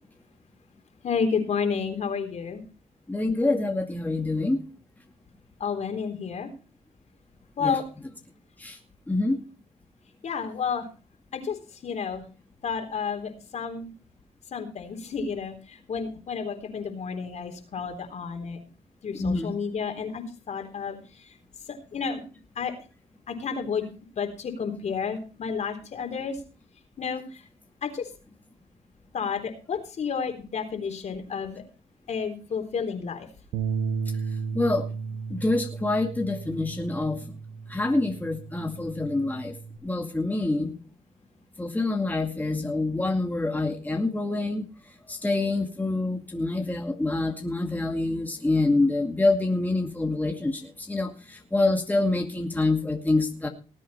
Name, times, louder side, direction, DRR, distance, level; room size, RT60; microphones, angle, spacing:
voice 1, 1.0-2.6 5.6-6.5 7.6-7.8 10.2-10.9 11.3-11.6 11.8-12.2 12.6-13.9 14.5-18.6 19.0-21.3 21.9-22.2 22.6-22.7 23.3-23.8 24.2-26.4 27.0-27.4 27.8-28.1 29.1-31.6 32.1-33.3, left 6 dB, 55° left, 5 dB, 3.8 m, -31 dB
voice 2, 3.1-4.6 7.6-7.8 8.6-8.8 9.1-9.4 19.1-19.5 34.5-34.8 35.3-37.2 37.7-39.5 39.8-40.7 41.6-44.6 45.1-53.5, left 2 dB, 10° left, 3 dB, 2.2 m, -26 dB
Bass guitar, 33.5-39.8, right 5 dB, 80° right, 1.5 m, -34 dB
19.0 x 8.4 x 4.3 m, 0.34 s
supercardioid pair, 70°, 14 cm